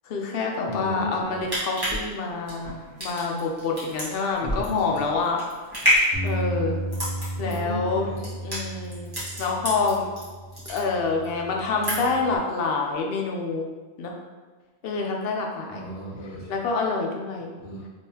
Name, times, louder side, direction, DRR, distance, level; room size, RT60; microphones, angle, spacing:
voice 1, 0.1-5.4 6.2-6.8 7.4-8.1 8.4-9.1 9.4-10.1 10.7-13.7 14.0-14.2 14.8-15.9 16.5-17.5, left 4 dB, 65° left, 1 dB, 0.7 m, -27 dB
voice 2, 0.6-1.5 4.4-5.0 7.3-8.3 15.7-16.7 17.6-17.9, left 1 dB, 40° left, -6 dB, 1.0 m, -35 dB
sound 1, 1.2-10.2 10.5-11.3 11.6-12.3 12.6-12.7, equal, 20° right, 1.2 m, -28 dB
Bass guitar, 6.1-12.4, right 1 dB, 90° right, 1.3 m, -34 dB
3.6 x 3.0 x 2.8 m, 1.3 s
omnidirectional pair, 1.1 m